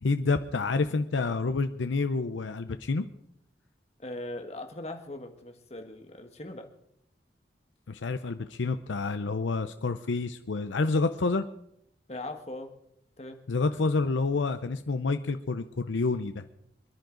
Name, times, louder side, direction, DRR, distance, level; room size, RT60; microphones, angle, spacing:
voice 1, 0.0-3.0 7.9-11.4 13.5-16.4, left 3 dB, 90° left, 9 dB, 0.6 m, -28 dB
voice 2, 4.0-6.7 12.1-12.7 13.2-13.4, left 1 dB, 35° left, 5 dB, 1.5 m, -40 dB
26.5 x 10.5 x 3.9 m, 0.76 s
head